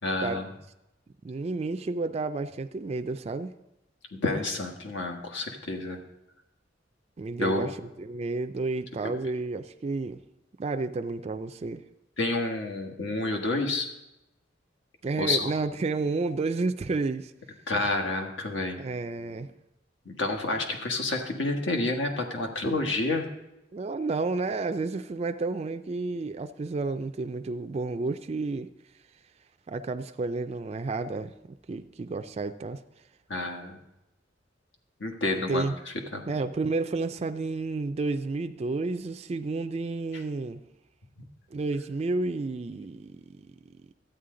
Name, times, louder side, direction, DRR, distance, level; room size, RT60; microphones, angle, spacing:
voice 1, 0.0-0.5 4.1-6.0 7.4-7.6 9.0-9.1 12.2-13.9 15.2-15.5 17.7-18.8 20.0-23.3 33.3-33.8 35.0-36.4 40.1-40.2, left 2 dB, 75° left, 3 dB, 1.4 m, -29 dB
voice 2, 1.2-3.5 7.2-10.2 10.6-11.8 15.0-17.3 18.8-19.5 23.7-28.7 29.7-32.8 35.3-35.7 36.3-40.6 41.5-43.5, right 3 dB, 35° right, 7 dB, 0.3 m, -31 dB
12.5 x 8.9 x 3.8 m, 0.92 s
head